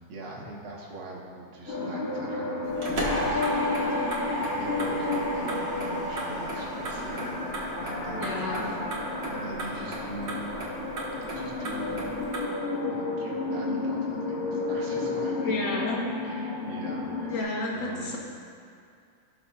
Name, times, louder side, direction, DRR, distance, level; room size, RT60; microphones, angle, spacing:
voice 1, 0.1-10.6 11.2-12.0 12.8-17.3 17.7-18.0, right 2 dB, 75° right, -3 dB, 2.1 m, -42 dB
sound 1, 1.7-17.4, left 3 dB, 35° left, 1.7 m, -32 dB
Motor vehicle (road), 2.6-12.4, right 1 dB, 50° right, 1.8 m, -37 dB
sound 2, 3.0-8.8 9.1-9.6, equal, 10° right, 0.3 m, -34 dB
voice 2, 8.1-8.6 15.4-16.0 17.3-18.2, left 2 dB, 65° left, -2 dB, 1.9 m, -31 dB
17.0 x 5.9 x 2.4 m, 2.3 s
omnidirectional pair, 2.3 m